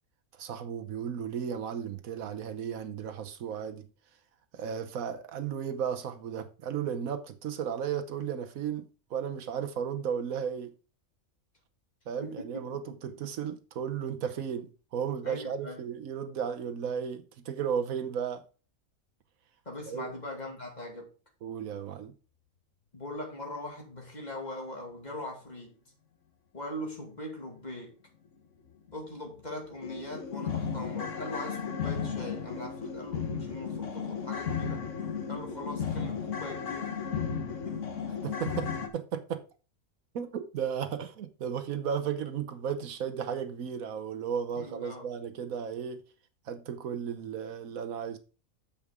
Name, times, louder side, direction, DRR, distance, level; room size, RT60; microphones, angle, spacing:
voice 1, 0.4-3.9 4.5-10.7 12.1-18.4 19.9-20.1 21.4-22.1 38.2-39.4 40.1-46.0 46.5-48.2, right 8 dB, 75° right, 1.3 m, -34 dB
voice 2, 12.2-12.6 15.2-15.8 19.7-21.1 22.9-25.8 26.5-28.0 28.9-34.9 35.3-37.0 44.6-45.1, left 1 dB, 30° left, 2.3 m, -41 dB
sound 1, 28.9-29.0 29.4-29.5 29.8-38.9, left 6 dB, 60° left, 1.5 m, -34 dB
9.0 x 7.2 x 3.6 m
omnidirectional pair, 1.5 m